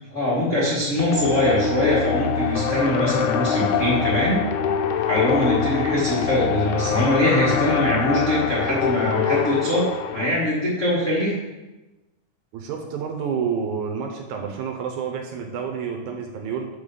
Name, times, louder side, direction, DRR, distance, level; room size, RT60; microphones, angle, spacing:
voice 1, 0.1-4.4 5.1-9.9 10.1-11.3, left 1 dB, 40° left, -7 dB, 1.1 m, -22 dB
sound 1, 1.0-10.3, left 7 dB, 75° left, 1.9 m, -24 dB
voice 2, 12.5-16.7, right 6 dB, 75° right, 3 dB, 2.0 m, -29 dB
6.8 x 5.2 x 5.4 m, 1.0 s
omnidirectional pair, 3.8 m